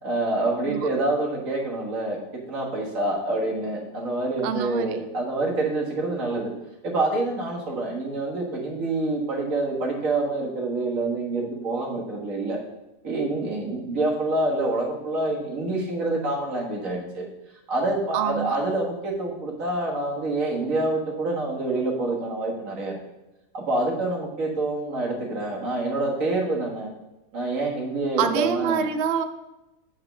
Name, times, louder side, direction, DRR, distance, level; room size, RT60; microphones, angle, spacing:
voice 1, 0.0-2.2 2.5-6.5 6.8-12.6 13.0-17.3 17.7-23.0 23.5-26.9 27.3-28.9, right 2 dB, 55° right, -1 dB, 2.0 m, -27 dB
voice 2, 4.4-5.0 18.1-18.6 28.2-29.2, right 7 dB, 90° right, 9 dB, 0.5 m, -26 dB
7.6 x 4.5 x 5.9 m, 0.96 s
omnidirectional pair, 1.7 m